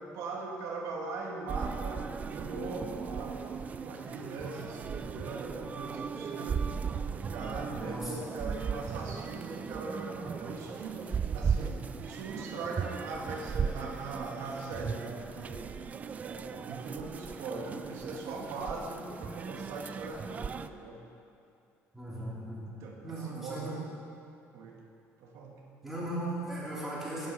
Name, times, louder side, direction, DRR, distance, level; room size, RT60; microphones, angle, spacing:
voice 1, 0.0-6.6 7.1-15.7 16.2-21.0 22.1-22.4 22.7-23.8 24.5-24.8 25.2-25.6, right 3 dB, 85° right, -1 dB, 1.6 m, -40 dB
sound 1, 1.5-20.7, right 6 dB, 30° right, 0.4 m, -37 dB
voice 2, 7.7-8.3 21.9-23.9 25.8-27.3, right 1 dB, 5° right, -8 dB, 3.4 m, -38 dB
11.5 x 9.5 x 5.9 m, 2.5 s
cardioid pair, 150°, 5 cm